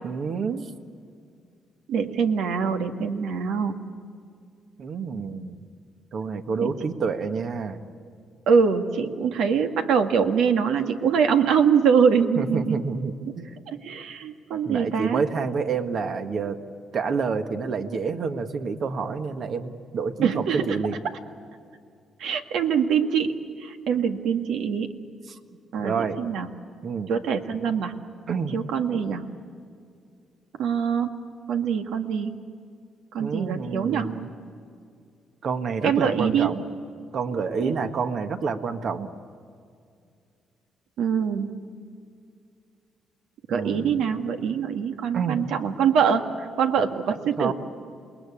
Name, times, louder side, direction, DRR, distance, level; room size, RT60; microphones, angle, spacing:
voice 1, 0.0-0.7 4.8-5.6 6.1-7.8 12.4-13.5 14.6-16.6 16.9-21.0 25.3-25.4 25.8-26.2 26.8-27.1 28.3-28.5 33.2-34.3 35.4-36.7 37.1-39.1 43.5-44.0 45.1-45.5 47.4-47.5, right 5 dB, 60° right, 7 dB, 1.7 m, -28 dB
voice 2, 1.9-3.8 6.6-6.7 8.5-12.8 13.2-13.3 13.7-15.2 20.2-20.8 22.2-24.9 25.7-26.5 27.1-27.9 28.5-29.3 30.6-31.1 31.5-32.4 33.1-34.1 35.8-36.5 37.6-37.7 41.0-41.6 43.5-47.5, right 6 dB, 85° right, 6 dB, 1.8 m, -24 dB
28.5 x 20.5 x 8.6 m, 2.3 s
cardioid pair, 90°, 0 cm